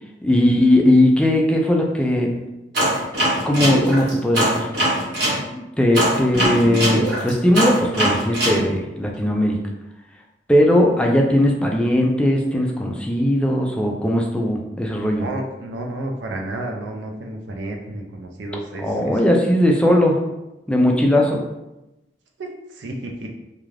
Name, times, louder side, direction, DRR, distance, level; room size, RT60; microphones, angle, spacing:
voice 1, 0.2-2.3 3.4-4.7 5.5-9.6 10.5-15.3 18.8-20.2 20.7-21.4, left 1 dB, 5° left, 0 dB, 0.3 m, -18 dB
sound 1, 2.7-5.4 5.9-8.6, right 1 dB, 65° right, 1.1 m, -21 dB
voice 2, 15.2-19.2 22.4-23.3, right 1 dB, 90° right, 2 dB, 0.5 m, -31 dB
2.4 x 2.3 x 3.2 m, 0.94 s
head